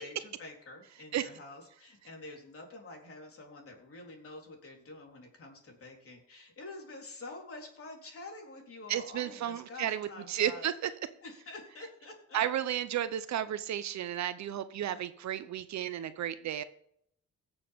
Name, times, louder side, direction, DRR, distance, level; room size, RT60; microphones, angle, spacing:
voice 1, 0.0-10.7 11.2-12.4, left 2 dB, 45° left, 1 dB, 3.8 m, -48 dB
voice 2, 8.9-10.9 12.3-16.6, right 10 dB, 65° right, 12 dB, 0.8 m, -33 dB
17.0 x 7.1 x 3.6 m, 0.70 s
cardioid pair, 90°, 30 cm